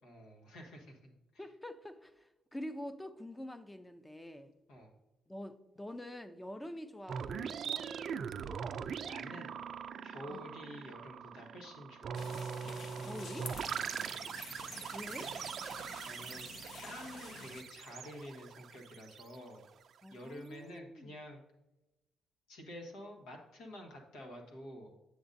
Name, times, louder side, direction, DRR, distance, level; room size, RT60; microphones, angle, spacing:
voice 1, 0.0-1.5 4.7-4.9 8.5-8.8 9.0-9.5 10.0-12.2 13.8-14.2 16.0-16.5 16.8-19.6 20.1-21.4 22.5-25.0, left 1 dB, 90° left, 1.4 m, -49 dB
voice 2, 1.4-4.5 5.3-7.9 10.3-10.5 13.0-13.5 14.9-15.3 20.0-21.1, left 1 dB, 10° left, 0.5 m, -46 dB
sound 1, 7.1-19.7, right 7 dB, 60° right, 0.4 m, -42 dB
sound 2, 12.1-17.6, left 5 dB, 60° left, 0.6 m, -50 dB
8.0 x 7.0 x 2.6 m
cardioid pair, 90°, 0 cm